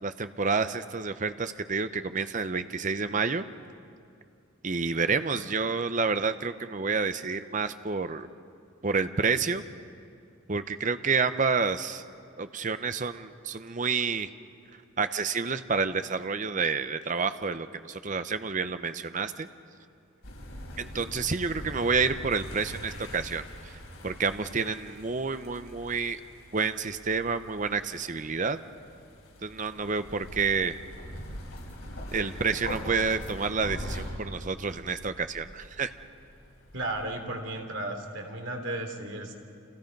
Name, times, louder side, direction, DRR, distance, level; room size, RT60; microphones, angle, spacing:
voice 1, 0.0-3.4 4.6-8.3 8.8-9.6 10.5-12.0 12.4-14.3 15.0-19.5 20.8-23.8 24.0-26.2 26.5-28.6 29.4-30.8 32.1-35.9, right 5 dB, 35° right, 10 dB, 0.7 m, -29 dB
sound 1, 20.2-37.2, equal, 90° left, 6.7 m, -42 dB
voice 2, 36.7-39.3, right 1 dB, 60° right, 3 dB, 3.1 m, -34 dB
30.0 x 28.0 x 5.3 m, 2.4 s
head